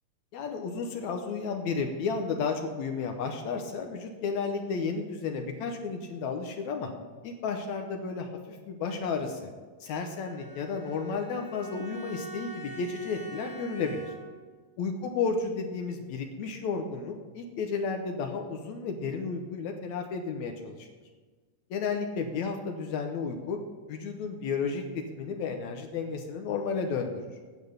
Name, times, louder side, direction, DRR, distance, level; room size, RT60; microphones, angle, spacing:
voice 1, 0.3-6.9 7.2-9.5 9.8-14.1 14.8-20.9 21.7-23.6 23.9-27.1, left 5 dB, 75° left, 4 dB, 1.9 m, -32 dB
Bowed string instrument, 10.0-14.5, right 3 dB, 30° left, 2.7 m, -45 dB
9.8 x 7.1 x 6.6 m, 1.4 s
omnidirectional pair, 3.8 m